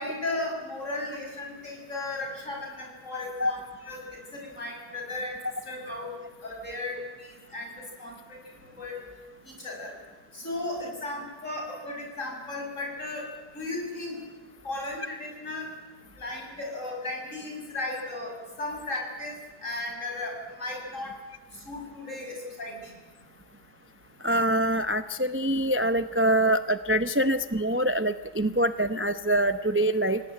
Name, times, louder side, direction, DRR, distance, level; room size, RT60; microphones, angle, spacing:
voice 1, 0.0-3.6 3.8-5.4 5.7-9.0 9.6-10.0 10.3-14.2 14.6-15.7 16.2-18.3 18.6-21.1 21.6-22.9, left 2 dB, 50° left, 1 dB, 6.8 m, -35 dB
voice 2, 24.2-30.2, right 1 dB, 20° right, 11 dB, 0.3 m, -24 dB
26.5 x 18.5 x 8.8 m, 1.2 s
omnidirectional pair, 1.7 m